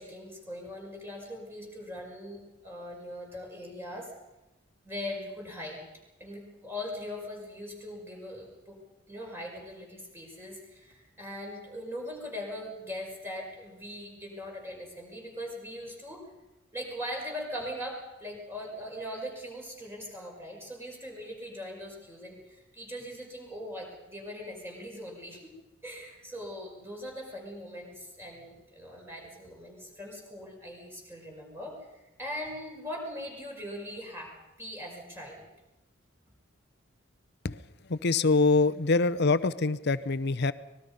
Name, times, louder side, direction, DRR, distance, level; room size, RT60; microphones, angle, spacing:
voice 1, 0.0-4.1 4.8-5.8 6.2-8.8 9.1-16.3 16.7-25.5 25.8-35.5, equal, 10° right, -1 dB, 5.8 m, -40 dB
voice 2, 37.9-40.5, left 3 dB, 60° left, 13 dB, 0.8 m, -24 dB
24.5 x 20.5 x 5.5 m, 1.0 s
head